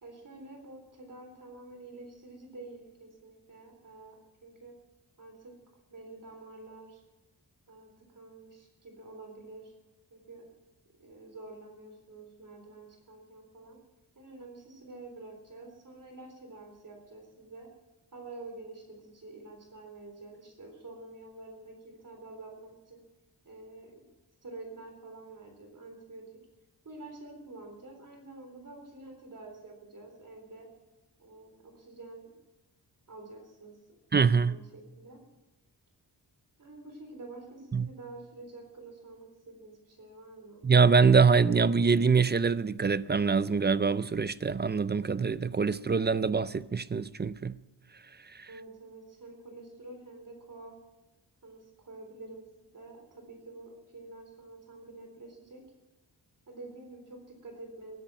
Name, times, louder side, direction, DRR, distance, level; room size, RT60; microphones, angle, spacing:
voice 1, 0.0-4.7 5.2-5.5 5.9-7.0 7.7-9.7 10.1-10.4 11.0-13.8 14.2-17.7 18.1-23.0 23.4-23.9 24.4-26.3 26.8-30.7 31.2-32.3 33.1-34.0 34.4-35.2 36.6-40.6 48.5-50.8 51.4-52.4 52.7-55.6 56.5-58.0, right 2 dB, 50° right, 3.7 m, -48 dB
voice 2, 34.1-34.6 37.7-37.9 40.6-47.6 48.3-48.5, right 5 dB, 25° right, 0.4 m, -24 dB
20.0 x 11.0 x 6.0 m
wide cardioid pair, 130°, 41 cm